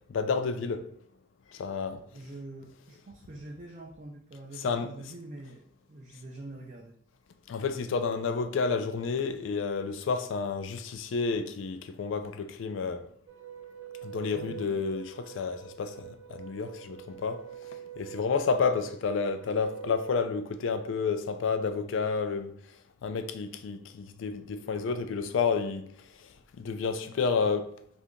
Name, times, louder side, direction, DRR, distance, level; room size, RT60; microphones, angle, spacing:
voice 1, 0.1-0.9 1.5-2.0 4.6-4.9 7.5-13.1 14.0-17.5 18.0-22.5 23.0-25.9 26.2-27.7, left 5 dB, 80° left, 0.4 m, -30 dB
voice 2, 2.1-6.9 14.3-14.6, right 2 dB, 40° right, 0.4 m, -45 dB
sound 1, 13.3-20.2, right 10 dB, 80° right, 0.8 m, -45 dB
2.8 x 2.5 x 3.5 m
head